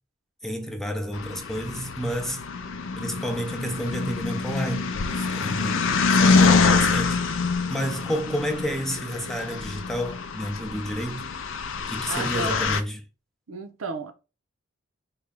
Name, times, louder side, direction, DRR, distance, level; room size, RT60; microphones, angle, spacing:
voice 1, 0.4-2.4 3.0-7.3 7.7-11.3 11.9-13.0, equal, ahead, 0.5 m, -30 dB
sound 1, 1.1-12.8, left 4 dB, 70° left, 0.4 m, -25 dB
voice 2, 12.1-12.8 13.5-14.1, right 3 dB, 85° right, 0.6 m, -33 dB
3.8 x 2.3 x 3.4 m
head